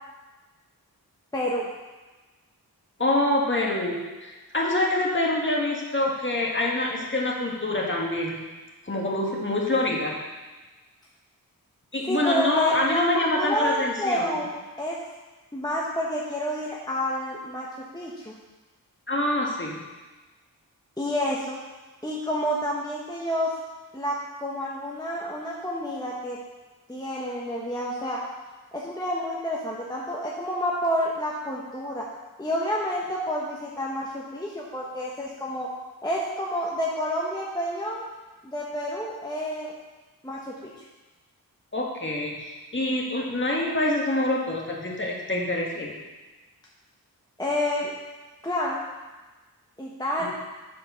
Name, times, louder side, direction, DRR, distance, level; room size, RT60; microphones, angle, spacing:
voice 1, 1.3-1.7 12.0-15.0 15.5-18.3 21.0-21.6 22.0-23.5 23.9-26.4 26.9-28.2 28.7-32.1 32.4-35.7 36.0-38.0 38.4-39.7 40.2-40.7 47.4-47.9 48.4-48.8 49.8-50.3, equal, 10° left, -4 dB, 0.9 m, -29 dB
voice 2, 3.0-8.4 8.8-10.2 11.9-14.3 19.1-19.8 41.7-45.9, left 1 dB, 30° left, -2 dB, 1.5 m, -26 dB
7.4 x 4.4 x 5.6 m, 1.2 s
wide cardioid pair, 80°, 38 cm